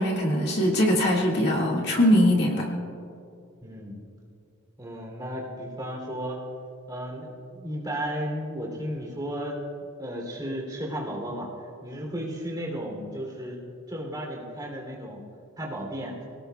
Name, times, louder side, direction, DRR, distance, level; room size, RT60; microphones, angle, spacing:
voice 1, 0.0-2.7, equal, 50° left, -2 dB, 2.0 m, -22 dB
voice 2, 3.6-4.1 4.8-6.4 6.9-11.5 11.8-13.6 13.9-15.2 15.6-16.2, equal, 20° right, -1 dB, 3.1 m, -34 dB
26.0 x 18.0 x 2.3 m, 2.5 s
head